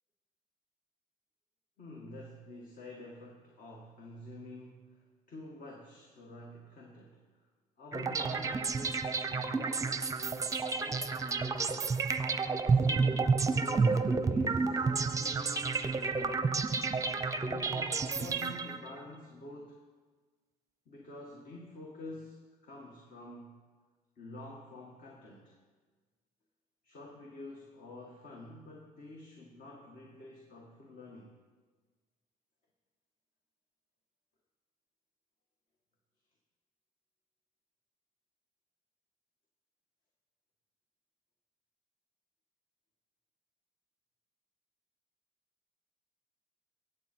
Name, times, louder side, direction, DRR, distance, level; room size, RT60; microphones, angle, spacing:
voice 1, 1.8-7.5 7.8-10.5 10.8-11.8 12.7-16.5 17.4-19.8 20.9-23.6 24.2-25.6 26.8-31.4, left 2 dB, 50° left, -1 dB, 1.9 m, -48 dB
sound 1, 7.9-19.0, right 4 dB, 20° right, 0.7 m, -30 dB
16.5 x 8.2 x 4.6 m, 1.4 s
cardioid pair, 110°, 17 cm